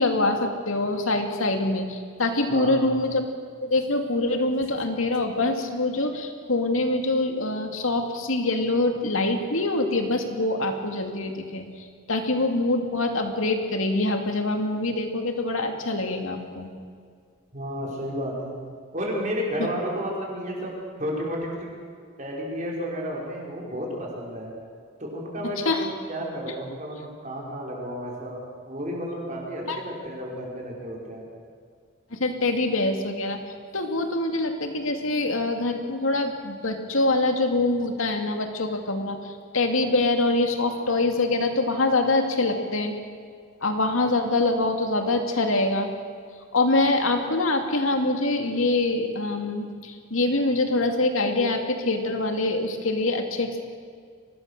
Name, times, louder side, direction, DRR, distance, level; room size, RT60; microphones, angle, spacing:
voice 1, 0.0-3.2 3.6-11.6 12.1-16.7 19.6-19.7 25.6-25.9 29.7-29.8 32.1-33.4 33.7-43.0 43.6-45.9 46.5-53.6, left 2 dB, 80° left, 4 dB, 2.4 m, -24 dB
voice 2, 2.5-2.9 17.5-18.5 18.9-21.7 22.2-24.5 25.0-31.4, equal, 35° right, -3 dB, 5.2 m, -32 dB
24.5 x 19.0 x 6.7 m, 2.1 s
head